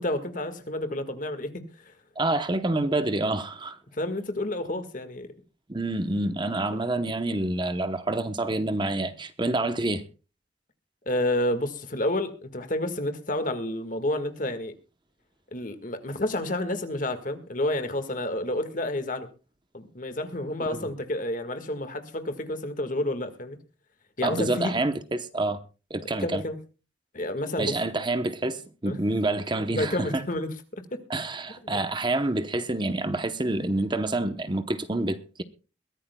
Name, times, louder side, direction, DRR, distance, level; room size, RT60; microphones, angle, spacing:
voice 1, 0.0-1.9 3.9-5.3 11.1-14.7 15.5-19.3 19.7-23.6 24.2-24.7 26.2-26.6 27.1-27.7 28.9-29.0 29.7-30.5 30.9-31.0 31.6-31.8, left 1 dB, 45° left, 1.7 m, -30 dB
voice 2, 2.2-3.8 5.7-10.0 20.7-20.9 24.2-25.6 25.9-26.4 27.6-30.2 31.1-35.4, right 2 dB, 25° right, 0.9 m, -27 dB
22.0 x 15.0 x 2.3 m
head